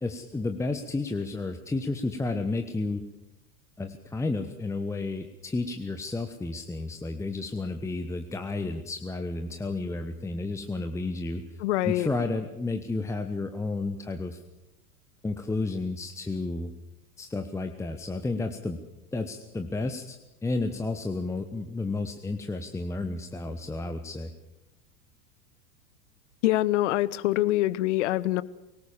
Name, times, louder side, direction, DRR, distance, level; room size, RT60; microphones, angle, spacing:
voice 1, 0.0-3.0 3.8-11.6 11.8-14.4 15.2-16.7 17.2-18.8 19.1-24.3, left 3 dB, 5° left, 6 dB, 1.1 m, -32 dB
voice 2, 11.6-12.1 26.4-28.4, left 16 dB, 50° left, 20 dB, 1.0 m, -25 dB
22.0 x 19.0 x 7.2 m, 0.93 s
figure-of-eight pair, 90°, 44 cm